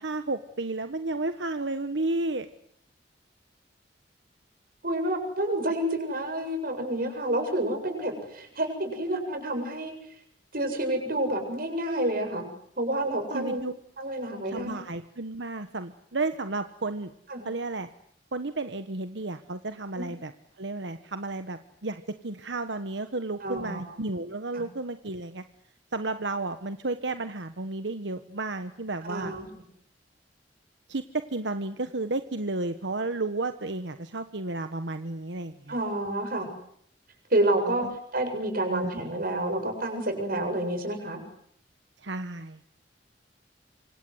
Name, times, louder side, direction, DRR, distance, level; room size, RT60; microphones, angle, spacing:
voice 1, 0.0-2.5 13.3-13.7 14.5-17.1 17.4-17.9 18.3-20.3 20.6-25.4 25.9-29.3 30.9-35.8 37.6-37.9 38.7-38.9 42.0-42.6, right 2 dB, 90° right, 9 dB, 1.3 m, -32 dB
voice 2, 4.8-9.9 10.5-12.5 12.8-13.6 14.0-14.8 17.3-17.5 20.0-20.1 23.4-23.8 24.5-24.6 29.0-29.5 35.7-36.5 37.3-37.9 38.1-41.2, right 1 dB, 55° right, 6 dB, 7.8 m, -29 dB
26.5 x 26.0 x 8.1 m, 0.67 s
head